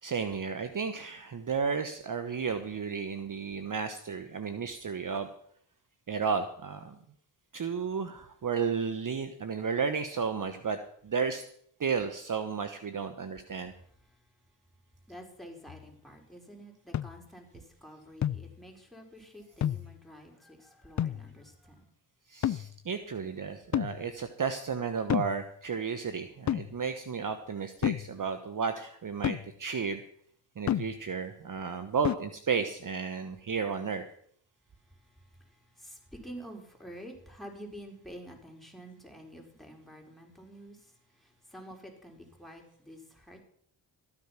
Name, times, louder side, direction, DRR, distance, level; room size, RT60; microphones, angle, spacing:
voice 1, 0.0-5.3 6.1-7.0 7.5-10.8 11.0-11.4 11.8-13.7 22.3-30.0 30.6-34.0, right 6 dB, 40° right, 9 dB, 1.2 m, -33 dB
voice 2, 15.1-21.9 35.4-43.4, equal, ahead, 1 dB, 4.8 m, -49 dB
sound 1, 15.7-15.8 16.9-17.2 18.2-18.6 19.6-20.0 21.0-21.3 22.4-22.8 23.7-24.1 25.1-25.4 26.5-26.8 27.8-28.1 29.2-29.5 30.7-31.0 32.1-32.2, left 10 dB, 35° left, 0.5 m, -30 dB
13.5 x 9.9 x 5.9 m, 0.65 s
supercardioid pair, 55°, 49 cm